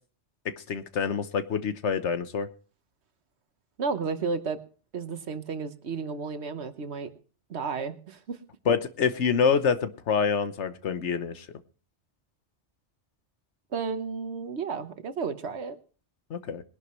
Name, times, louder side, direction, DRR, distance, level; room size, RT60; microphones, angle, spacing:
voice 1, 0.7-2.5 8.7-11.4 16.3-16.6, left 6 dB, 75° left, 11 dB, 1.3 m, -26 dB
voice 2, 3.8-4.6 4.9-7.1 7.5-8.4 13.7-15.8, right 5 dB, 65° right, 10 dB, 1.3 m, -32 dB
21.0 x 11.0 x 3.1 m, 0.39 s
omnidirectional pair, 1.2 m